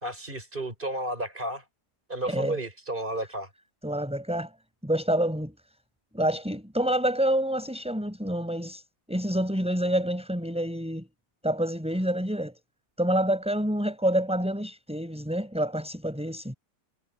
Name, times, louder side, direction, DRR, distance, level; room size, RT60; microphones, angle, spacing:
voice 1, 0.0-1.6 2.1-3.5, right 1 dB, 30° right, 7.1 m, -32 dB
voice 2, 3.8-4.5 4.8-5.5 6.1-8.8 9.1-11.1 11.4-12.5 13.0-16.5, right 1 dB, 5° right, 7.8 m, -27 dB
omnidirectional pair, 1.8 m